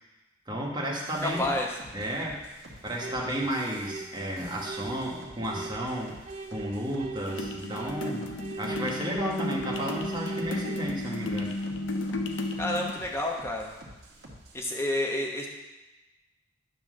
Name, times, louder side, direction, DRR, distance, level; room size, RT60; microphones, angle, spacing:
voice 1, 0.5-1.5 1.9-2.4 2.8-6.1 6.5-8.2 8.6-11.5, equal, 25° right, -3 dB, 1.3 m, -32 dB
sound 1, 1.0-14.6, right 1 dB, 60° right, 1.4 m, -49 dB
voice 2, 1.2-1.7 12.6-13.7 14.5-15.5, left 1 dB, 15° left, 0 dB, 1.0 m, -29 dB
sound 2, 3.0-10.9, right 4 dB, 40° right, 0.5 m, -40 dB
sound 3, 7.3-12.9, left 2 dB, 75° left, 0.6 m, -33 dB
9.4 x 3.2 x 6.3 m, 1.1 s
head